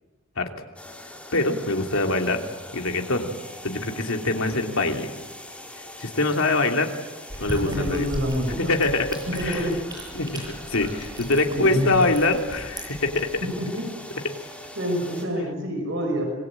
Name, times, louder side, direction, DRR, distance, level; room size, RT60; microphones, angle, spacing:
sound 1, 0.8-15.3, left 1 dB, 5° left, 4.5 m, -42 dB
voice 1, 1.3-2.4 2.7-3.3 3.6-5.1 6.0-6.9 7.4-8.1 8.6-9.7 10.1-13.3, left 2 dB, 90° left, 3 dB, 3.0 m, -24 dB
sound 2, 7.3-13.5, right 1 dB, 20° right, 8.0 m, -37 dB
voice 2, 7.6-8.7 9.3-9.7 11.2-12.1 13.4-13.8 14.8-16.3, equal, 65° right, 3 dB, 6.0 m, -27 dB
26.0 x 21.5 x 8.9 m, 1.2 s
head